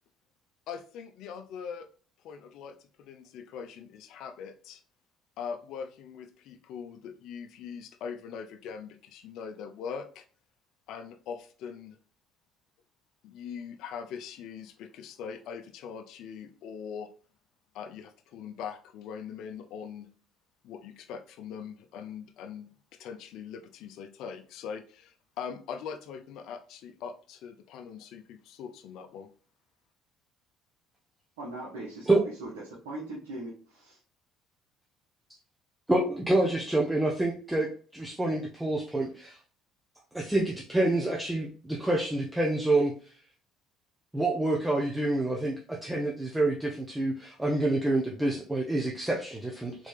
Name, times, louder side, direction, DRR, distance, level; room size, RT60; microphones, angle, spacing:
voice 1, 0.7-1.9 2.2-4.8 5.4-10.2 10.9-12.0 13.2-17.1 17.7-20.1 20.6-29.3, left 7 dB, 65° left, 0.6 m, -41 dB
voice 2, 31.4-32.5 32.8-34.0, right 2 dB, 85° right, 1.2 m, -40 dB
voice 3, 35.9-39.4 40.1-42.9 44.1-49.8, right 2 dB, 10° right, 0.9 m, -27 dB
4.1 x 3.2 x 3.4 m
hypercardioid pair, 65°, 0 cm